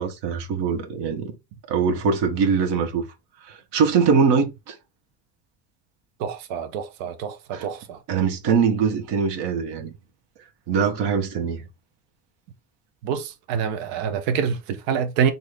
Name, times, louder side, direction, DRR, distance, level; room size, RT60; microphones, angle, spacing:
voice 1, 0.0-1.3 1.7-3.1 3.4-4.8 7.5-7.7 8.1-9.9 10.7-11.6, right 6 dB, 70° right, 1.1 m, -22 dB
voice 2, 6.2-8.0 13.0-15.3, right 7 dB, 85° right, 0.8 m, -26 dB
4.0 x 2.6 x 3.2 m
cardioid pair, 95°, 44 cm